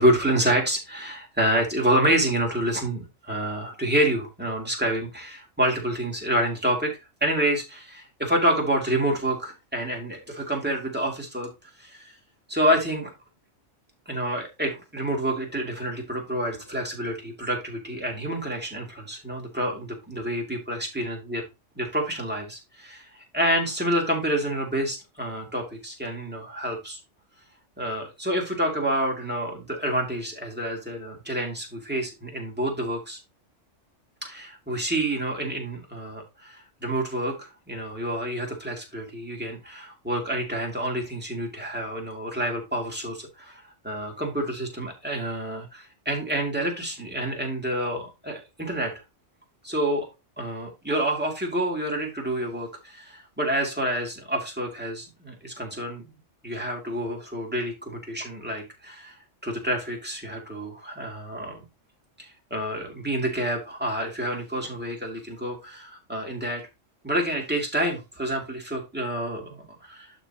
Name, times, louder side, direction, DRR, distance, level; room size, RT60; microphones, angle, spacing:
voice 1, 0.0-6.9 7.2-11.5 11.8-12.1 12.5-13.1 14.1-21.4 21.8-27.0 27.8-33.2 34.2-48.9 49.6-50.1 50.4-56.1 56.4-59.1 59.4-61.6 62.2-66.6 67.0-70.1, right 1 dB, 10° right, -1 dB, 2.7 m, -28 dB
11.5 x 4.6 x 2.9 m, 0.25 s
omnidirectional pair, 1.3 m